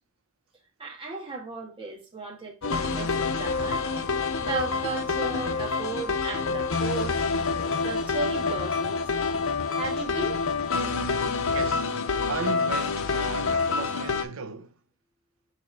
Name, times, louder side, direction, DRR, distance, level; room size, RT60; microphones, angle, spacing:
voice 1, 0.8-3.8 4.4-7.2 7.6-9.0 9.7-10.4, right 3 dB, 25° right, 2.1 m, -35 dB
sound 1, 2.6-14.2, left 4 dB, 80° left, 0.8 m, -27 dB
voice 2, 11.4-11.9 12.3-14.7, right 4 dB, 85° right, 0.8 m, -35 dB
5.7 x 4.2 x 4.8 m
head